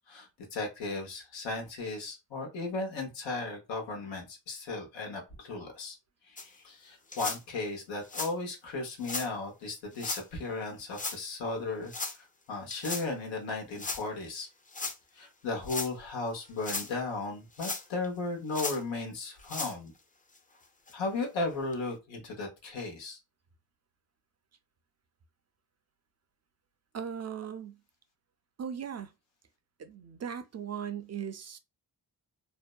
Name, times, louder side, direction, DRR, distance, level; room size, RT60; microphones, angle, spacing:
voice 1, 0.1-6.0 6.2-14.5 15.1-19.9 20.9-23.2, left 3 dB, 90° left, 1.0 m, -36 dB
sound 1, 6.4-6.5 7.1-7.4 8.0-8.3 9.0-9.3 10.0-10.2 10.9-11.2 11.9-12.2 12.7-13.1 13.8-14.0 14.7-15.0 15.6-15.9 16.5-16.9 17.6-18.1 18.5-18.8 19.4-19.7 20.4-20.5 20.9-21.0 21.7-21.8, left 3 dB, 20° left, 0.5 m, -36 dB
voice 2, 26.9-27.8 28.6-29.1 29.8-31.6, right 8 dB, 40° right, 0.4 m, -38 dB
2.6 x 2.1 x 2.2 m
cardioid pair, 60°, 44 cm